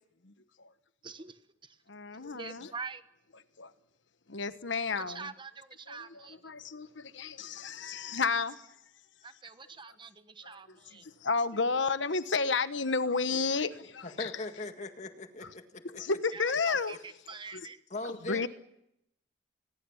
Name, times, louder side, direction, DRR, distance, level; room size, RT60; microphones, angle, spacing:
voice 1, 1.0-1.8 2.3-3.0 5.0-6.5 9.2-11.1 16.3-17.8, right 5 dB, 25° right, 1.2 m, -45 dB
voice 2, 1.9-2.7 3.6-3.7 4.3-5.3 5.9-8.6 10.4-10.6 11.0-14.3 15.9-17.0 17.5-17.6 18.3-18.5, left 4 dB, 85° left, 1.2 m, -32 dB
voice 3, 14.0-16.0 17.9-18.5, left 2 dB, 40° left, 1.9 m, -40 dB
27.5 x 21.5 x 7.3 m
head